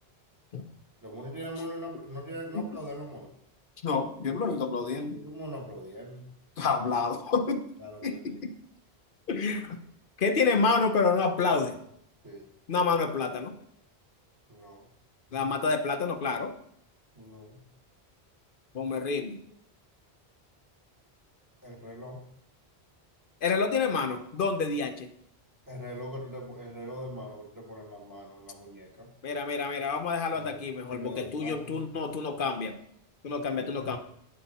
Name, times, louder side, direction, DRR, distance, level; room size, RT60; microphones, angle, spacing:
voice 1, 1.0-3.3 5.1-6.3 7.8-8.4 12.2-12.5 14.5-14.9 17.1-17.7 21.6-22.3 25.7-29.2 30.3-30.6 30.9-31.9, equal, 20° right, 1 dB, 1.4 m, -41 dB
voice 2, 3.8-5.2 6.6-7.6 8.0-8.5 9.3-9.8 10.2-11.8 12.7-13.5 15.3-16.5 18.7-19.4 23.4-25.1 29.2-32.8 33.2-34.0, left 4 dB, 55° left, 8 dB, 0.9 m, -28 dB
9.5 x 7.7 x 4.1 m, 0.72 s
omnidirectional pair, 1.1 m